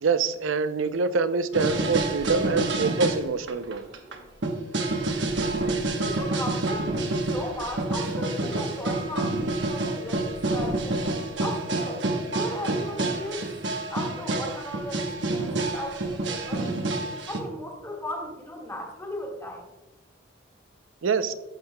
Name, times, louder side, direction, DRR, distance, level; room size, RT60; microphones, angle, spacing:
voice 1, 0.0-3.9 21.0-21.3, right 5 dB, 90° right, 12 dB, 0.5 m, -25 dB
sound 1, 1.5-3.2 3.5-4.1 4.4-17.4, right 2 dB, 65° right, 1.0 m, -28 dB
voice 2, 6.0-11.0 11.4-12.0 12.3-13.5 13.9-16.9 17.3-19.6, left 1 dB, 15° left, -2 dB, 1.7 m, -36 dB
13.5 x 6.6 x 2.2 m, 1.1 s
head